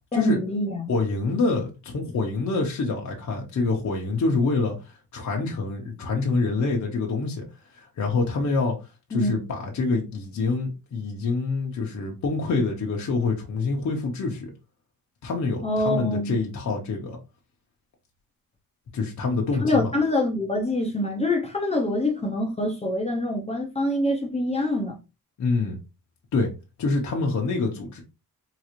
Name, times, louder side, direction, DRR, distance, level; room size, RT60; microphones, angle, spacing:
voice 1, 0.1-0.9 9.1-9.5 15.6-16.4 19.6-25.0, left 1 dB, 20° left, 0.5 m, -25 dB
voice 2, 0.9-7.4 7.7-8.8 9.1-14.5 15.2-17.2 18.9-19.9 25.4-25.8 26.3-26.5 26.8-28.0, left 3 dB, 55° left, 0.8 m, -26 dB
3.9 x 2.4 x 3.0 m
wide cardioid pair, 175°, 35 cm